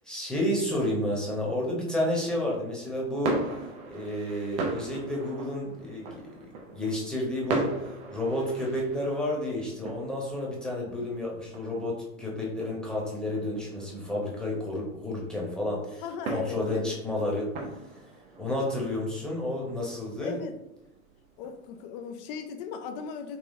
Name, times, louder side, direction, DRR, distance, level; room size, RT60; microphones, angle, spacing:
voice 1, 0.1-3.4 3.9-6.5 6.7-7.7 8.1-16.0 16.3-17.5 18.4-20.4, left 1 dB, ahead, -4 dB, 0.9 m, -31 dB
sound 1, 2.8-21.9, right 3 dB, 20° right, 0.3 m, -39 dB
voice 2, 16.0-17.0 20.2-20.6 21.4-23.4, left 6 dB, 40° left, 8 dB, 0.5 m, -37 dB
3.3 x 3.3 x 2.5 m, 0.91 s
figure-of-eight pair, 80°, 41 cm